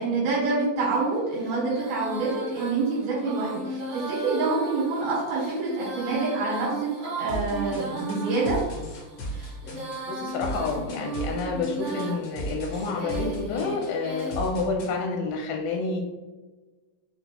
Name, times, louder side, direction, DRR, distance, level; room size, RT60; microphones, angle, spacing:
voice 1, 0.0-6.9 7.2-8.6, right 3 dB, 90° right, -6 dB, 2.8 m, -27 dB
Female singing, 0.7-14.4, right 2 dB, 70° right, 0.9 m, -35 dB
sound 1, 7.3-14.9, right 1 dB, 65° left, 1.7 m, -35 dB
voice 2, 10.1-16.0, left 4 dB, 80° left, 0 dB, 2.2 m, -29 dB
5.7 x 2.0 x 3.5 m, 1.2 s
omnidirectional pair, 4.1 m